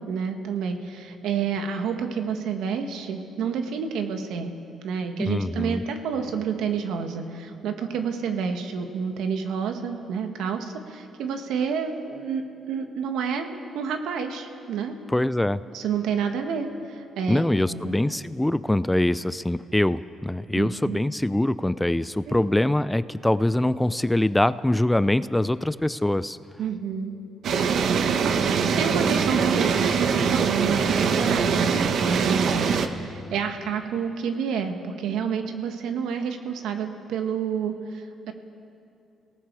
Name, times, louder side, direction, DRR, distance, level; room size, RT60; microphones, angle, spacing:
voice 1, 0.0-4.5 4.8-14.9 15.7-18.0 20.5-21.0 22.3-22.5 26.6-27.1 28.1-28.4 28.8-38.3, right 6 dB, 85° right, 5 dB, 1.8 m, -29 dB
voice 2, 5.2-5.8 15.1-15.6 17.3-26.4, left 1 dB, 10° left, 15 dB, 0.5 m, -23 dB
sound 1, 27.4-32.9, right 6 dB, 65° right, 1.3 m, -23 dB
29.5 x 18.5 x 4.8 m, 2.7 s
cardioid pair, 90°, 0 cm